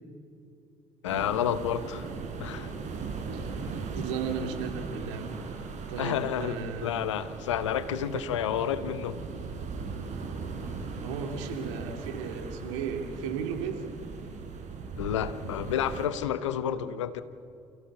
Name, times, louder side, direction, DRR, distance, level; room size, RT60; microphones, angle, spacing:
voice 1, 1.0-2.1 2.4-2.7 6.0-9.2 15.0-17.2, left 9 dB, 85° left, 14 dB, 0.9 m, -30 dB
sound 1, 1.1-16.1, right 4 dB, 55° right, 4.7 m, -39 dB
voice 2, 3.3-5.3 5.9-7.1 8.1-8.4 11.0-13.9, right 6 dB, 80° right, 4 dB, 2.5 m, -35 dB
28.5 x 15.5 x 7.2 m, 2.6 s
hypercardioid pair, 55°, 15 cm